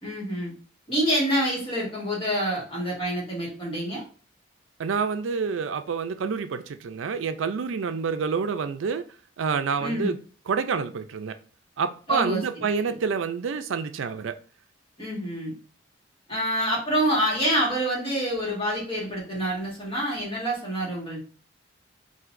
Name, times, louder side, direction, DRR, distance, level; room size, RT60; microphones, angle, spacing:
voice 1, 0.0-0.5 0.9-4.0 9.8-10.1 12.1-12.4 12.8-13.0 15.0-15.5 16.3-21.2, equal, 30° left, 1.8 m, -27 dB
voice 2, 4.8-9.0 9.4-10.2 10.5-11.4 11.8-14.4, right 5 dB, 85° right, 0.4 m, -28 dB
5.7 x 2.7 x 2.5 m
head